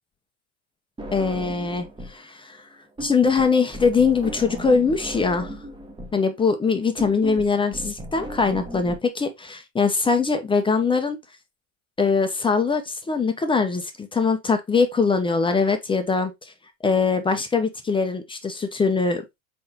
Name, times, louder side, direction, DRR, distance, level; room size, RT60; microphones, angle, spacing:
sound 1, 1.0-2.2 2.5-9.0, right 1 dB, 10° right, 1.0 m, -36 dB
voice 1, 1.1-2.6 3.0-5.5 6.1-11.2 12.0-16.5 16.8-19.2, left 4 dB, 10° left, 0.6 m, -22 dB
4.3 x 3.8 x 2.8 m
hypercardioid pair, 95°, 41 cm